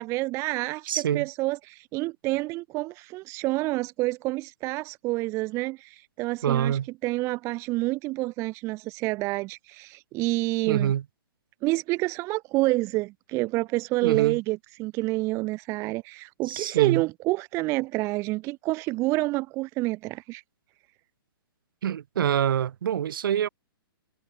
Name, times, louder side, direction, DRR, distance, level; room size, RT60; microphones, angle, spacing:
voice 1, 0.0-10.9 11.6-20.4, right 21 dB, 25° right, 0.4 m, -28 dB
voice 2, 0.9-1.3 6.4-6.9 10.7-11.0 14.0-14.4 16.5-17.0 21.8-23.5, right 9 dB, 65° right, 2.4 m, -25 dB
hypercardioid pair, 140°, 12 cm